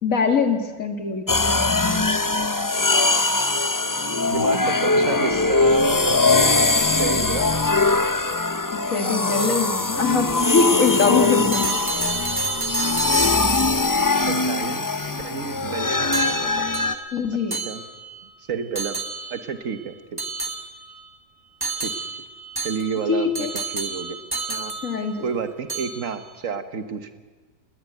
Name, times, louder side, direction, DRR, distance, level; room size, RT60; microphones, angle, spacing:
voice 1, 0.0-2.1 8.7-11.7 17.1-17.6 23.1-23.5 24.8-25.2, left 5 dB, 55° left, 6 dB, 2.4 m, -23 dB
sound 1, 1.3-17.0, left 3 dB, 25° left, 0.4 m, -21 dB
voice 2, 4.3-7.6 14.2-16.6 17.5-17.8 18.4-19.0 19.3-20.2 21.8-21.9 22.6-24.2 24.5-24.7 25.2-27.1, right 6 dB, 55° right, 10 dB, 1.7 m, -30 dB
sound 2, 11.5-13.9 16.1-18.2 18.8-19.5 20.2-21.1 21.6-25.4 25.7-26.2, right 3 dB, 15° right, 1.4 m, -30 dB
19.5 x 19.5 x 9.3 m, 1.3 s
omnidirectional pair, 1.7 m